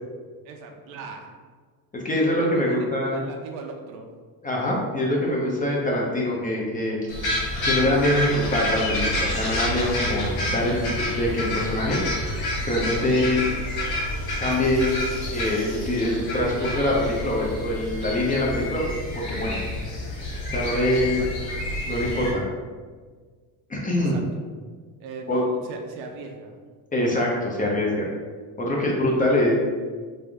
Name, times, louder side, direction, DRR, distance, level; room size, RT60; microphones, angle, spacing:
voice 1, 0.4-1.3 2.2-2.8 3.0-4.1 21.0-21.3 24.0-24.3 25.0-26.5, right 4 dB, 80° right, 2 dB, 0.7 m, -39 dB
voice 2, 1.9-3.2 4.4-7.0 7.6-12.0 12.7-13.4 14.4-15.0 15.3-18.8 19.1-19.6 20.5-21.2 21.8-22.5 23.7-24.2 25.3-25.4 26.9-28.1 28.6-29.5, left 1 dB, 20° left, -3 dB, 0.5 m, -24 dB
sound 1, 7.1-22.3, left 1 dB, 50° left, 1.1 m, -29 dB
3.3 x 2.6 x 3.4 m, 1.5 s
cardioid pair, 130°, 47 cm